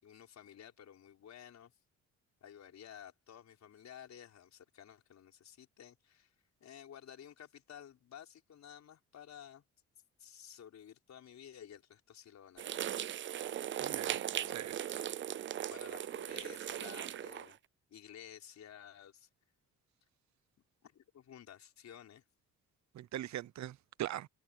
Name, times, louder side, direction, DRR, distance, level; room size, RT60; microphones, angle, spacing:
voice 1, 0.0-1.7 2.4-6.3 6.6-9.6 10.2-12.9 14.1-14.7 15.7-17.6 17.9-19.3 20.8-22.2, left 9 dB, 65° left, 5.5 m, -54 dB
sound 1, 12.6-17.5, right 10 dB, 40° right, 0.4 m, -38 dB
voice 2, 13.8-14.8 22.9-24.3, right 12 dB, 65° right, 0.8 m, -41 dB
open air
cardioid pair, 90°, 30 cm